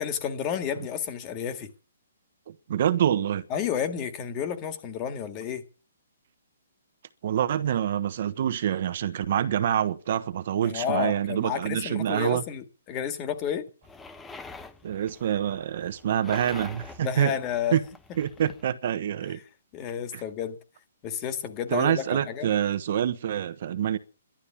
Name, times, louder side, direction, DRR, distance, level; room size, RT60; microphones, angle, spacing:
voice 1, 0.0-1.7 3.5-5.6 10.6-13.6 17.0-17.8 19.7-20.6 21.0-22.5, left 8 dB, 25° left, 1.9 m, -31 dB
voice 2, 2.5-3.4 7.2-12.4 14.8-17.3 17.7-17.8 18.2-19.4 20.1-20.2 21.7-24.0, right 10 dB, 50° right, 1.1 m, -26 dB
sound 1, 13.8-18.7, left 3 dB, 5° left, 0.9 m, -45 dB
12.0 x 12.0 x 7.3 m
hypercardioid pair, 160°, 0 cm